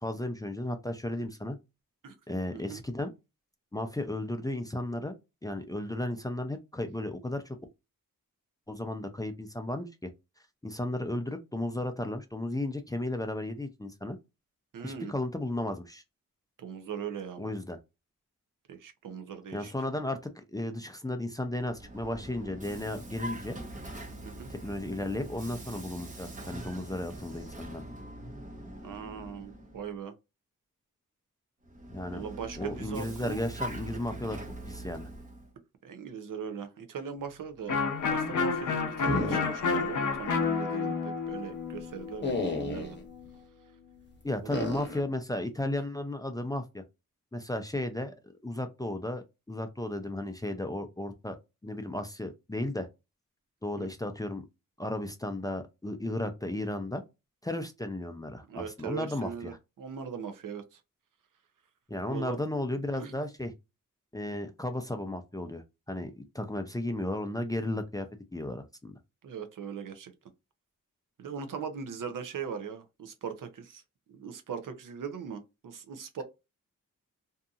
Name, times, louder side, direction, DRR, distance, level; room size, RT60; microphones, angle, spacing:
voice 1, 0.0-1.6 2.3-3.1 3.7-5.1 5.4-7.6 8.7-10.1 10.6-14.2 14.8-16.0 17.4-17.8 19.5-23.6 24.5-27.8 31.9-32.2 32.6-34.4 34.7-35.1 44.2-46.8 47.3-48.1 48.4-51.4 51.6-52.9 53.6-54.4 54.8-57.0 57.4-59.6 61.9-63.5 64.1-68.9, left 1 dB, 10° left, 0.4 m, -34 dB
voice 2, 14.7-15.1 16.6-17.5 18.7-19.7 24.2-24.5 28.8-30.1 32.1-33.4 35.8-37.8 38.1-43.0 44.4-44.7 53.8-53.9 58.5-60.8 62.1-62.4 62.9-63.2 69.2-70.1 71.2-73.8 74.1-76.2, right 7 dB, 70° right, 0.6 m, -40 dB
Vehicle, 21.5-30.0 31.6-35.5, right 1 dB, 25° right, 0.8 m, -43 dB
Electric guitar, 37.7-43.3, left 5 dB, 65° left, 0.7 m, -30 dB
sound 1, 39.0-39.9 40.2-40.3 42.2-43.0 44.5-45.0, left 2 dB, 35° left, 0.8 m, -32 dB
2.7 x 2.5 x 2.3 m
cardioid pair, 75°, 33 cm